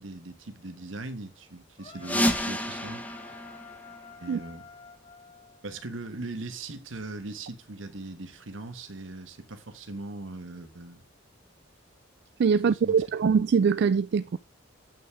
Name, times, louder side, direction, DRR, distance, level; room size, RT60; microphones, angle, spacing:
voice 1, 0.0-3.0 4.2-4.6 5.6-11.0 12.8-13.0, right 2 dB, 75° right, 1.4 m, -40 dB
sound 1, 1.8-5.9, left 5 dB, 30° left, 1.5 m, -49 dB
sound 2, 2.0-4.6, equal, 10° left, 1.3 m, -30 dB
voice 2, 12.4-14.4, right 6 dB, 60° right, 0.4 m, -23 dB
8.9 x 5.8 x 3.6 m
head